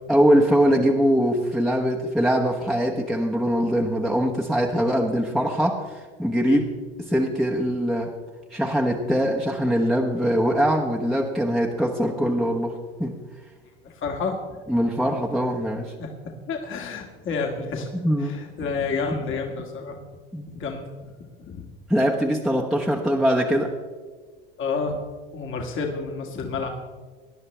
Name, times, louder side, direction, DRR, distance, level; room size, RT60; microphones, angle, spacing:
voice 1, 0.1-6.6 7.0-8.1 8.5-13.2 14.7-15.9 17.9-18.4 20.3-20.5 21.9-23.7, equal, ahead, -2 dB, 1.1 m, -22 dB
voice 2, 13.8-14.4 16.0-17.9 18.2-20.0 20.5-21.1 21.4-21.6 24.6-25.0 25.3-26.7, left 4 dB, 45° left, 2 dB, 1.9 m, -30 dB
18.5 x 10.5 x 3.3 m, 1.5 s
hypercardioid pair, 85°, 29 cm